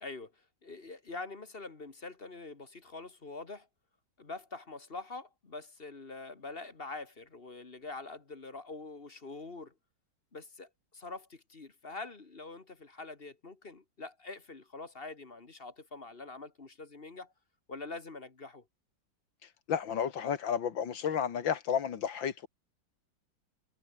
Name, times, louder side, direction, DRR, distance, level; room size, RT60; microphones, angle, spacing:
voice 1, 0.0-3.7 4.2-9.7 10.3-17.3 17.7-18.7, left 3 dB, 30° left, 1.8 m, -45 dB
voice 2, 19.7-22.5, left 8 dB, 80° left, 2.4 m, -32 dB
omnidirectional pair, 2.0 m